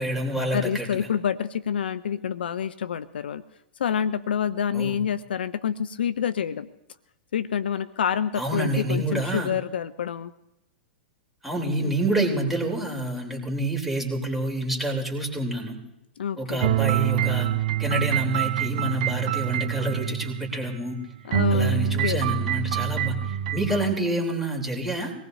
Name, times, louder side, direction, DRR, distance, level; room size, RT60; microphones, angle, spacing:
voice 1, 0.0-0.9 4.7-5.0 8.4-9.5 11.4-15.8 16.4-17.5 17.8-21.0 21.5-25.1, right 1 dB, ahead, -1 dB, 3.5 m, -27 dB
voice 2, 0.5-3.4 3.8-6.7 7.3-10.3 11.8-11.9 16.2-16.7 21.2-22.2, left 8 dB, 70° left, 16 dB, 0.6 m, -27 dB
sound 1, 16.6-21.0 21.3-23.9, right 11 dB, 55° right, 0.7 m, -26 dB
24.5 x 18.5 x 2.7 m, 0.89 s
hypercardioid pair, 110°, 6 cm